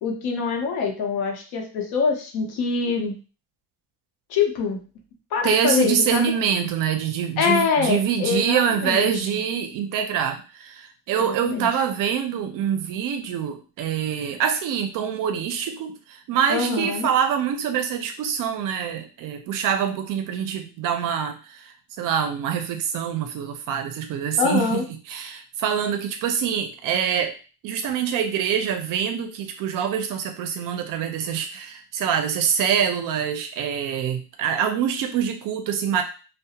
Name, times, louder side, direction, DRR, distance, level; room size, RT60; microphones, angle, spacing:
voice 1, 0.0-3.1 4.3-4.8 5.3-6.3 7.4-9.4 11.2-11.7 16.5-17.1 24.4-24.9, left 5 dB, 70° left, 2 dB, 0.8 m, -24 dB
voice 2, 5.4-27.3 27.6-36.0, right 8 dB, 60° right, 6 dB, 0.5 m, -25 dB
2.4 x 2.1 x 2.8 m, 0.34 s
cardioid pair, 165°, 38 cm